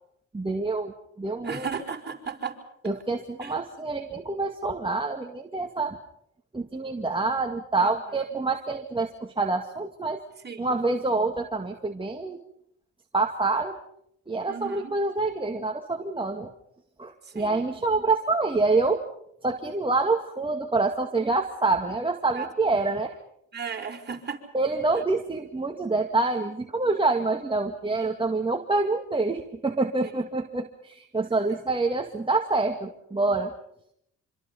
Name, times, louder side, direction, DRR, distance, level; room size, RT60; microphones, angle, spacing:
voice 1, 0.3-1.7 2.8-6.0 6.5-10.2 10.6-12.4 13.1-13.8 14.3-16.5 17.0-19.0 19.4-23.1 24.5-33.5, right 3 dB, 15° right, 3 dB, 2.1 m, -26 dB
voice 2, 1.4-2.6 3.4-3.5 7.8-7.9 8.3-8.4 10.4-10.7 14.5-14.9 17.3-17.6 22.4-22.5 23.5-24.4, right 6 dB, 35° right, 2 dB, 5.4 m, -35 dB
26.5 x 26.0 x 5.5 m, 0.71 s
cardioid pair, 90°, 30 cm